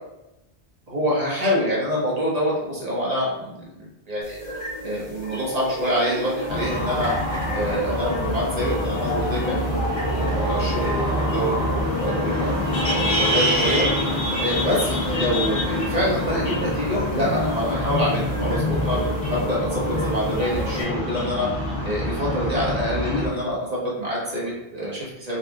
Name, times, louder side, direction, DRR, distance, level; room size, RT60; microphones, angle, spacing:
voice 1, 0.9-4.4 4.8-7.1 7.5-9.7 10.1-13.8 14.4-21.5 21.8-25.4, equal, 40° right, -6 dB, 1.2 m, -26 dB
sound 1, 4.2-20.8, equal, 50° left, 1.5 m, -34 dB
sound 2, 6.5-23.3, left 1 dB, 80° left, 1.3 m, -25 dB
4.1 x 2.5 x 3.5 m, 0.92 s
omnidirectional pair, 1.1 m